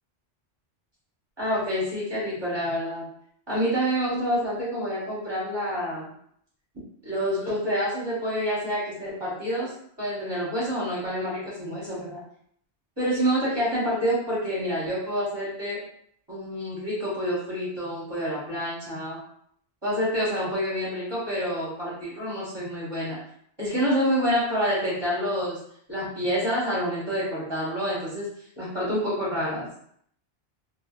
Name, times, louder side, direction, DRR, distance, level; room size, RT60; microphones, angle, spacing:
voice 1, 1.4-3.1 3.5-6.1 7.0-9.7 10.0-12.2 13.0-15.8 16.3-19.2 19.8-23.2 23.6-25.6 25.9-28.3 28.6-29.6, equal, 20° right, -8 dB, 1.2 m, -27 dB
2.7 x 2.3 x 2.4 m, 0.66 s
omnidirectional pair, 1.2 m